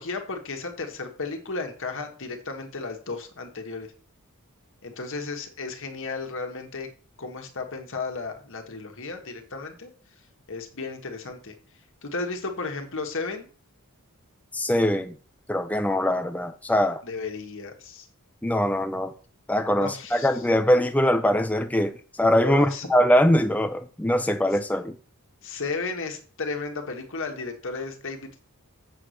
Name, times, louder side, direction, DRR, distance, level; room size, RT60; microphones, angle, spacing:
voice 1, 0.0-3.9 4.8-6.9 7.2-9.9 10.5-11.5 12.0-13.5 17.0-18.1 19.7-20.3 22.4-22.9 25.4-28.4, left 4 dB, 60° left, 1.6 m, -34 dB
voice 2, 14.5-15.2 15.5-17.0 18.4-19.1 19.5-25.0, equal, 5° left, 0.4 m, -22 dB
7.8 x 4.9 x 6.3 m
head